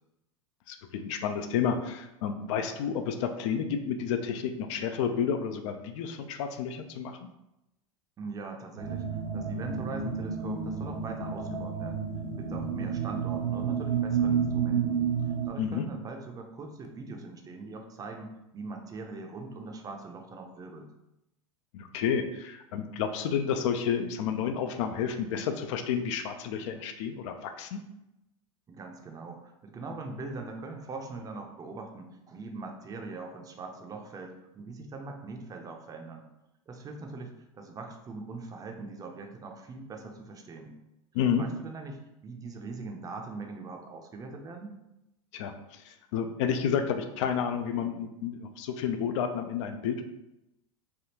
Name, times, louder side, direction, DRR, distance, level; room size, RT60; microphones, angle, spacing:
voice 1, 0.7-7.2 15.6-15.9 21.7-27.8 41.1-41.4 45.3-50.0, left 7 dB, 60° left, 7 dB, 0.4 m, -30 dB
voice 2, 8.2-12.0 12.4-20.9 26.7-26.9 28.7-36.3 36.7-40.8 41.4-44.8, right 3 dB, 20° right, 3 dB, 0.5 m, -42 dB
sound 1, 8.8-15.5, right 6 dB, 85° right, 0.7 m, -30 dB
3.4 x 2.3 x 2.8 m, 0.90 s
hypercardioid pair, 100°, 17 cm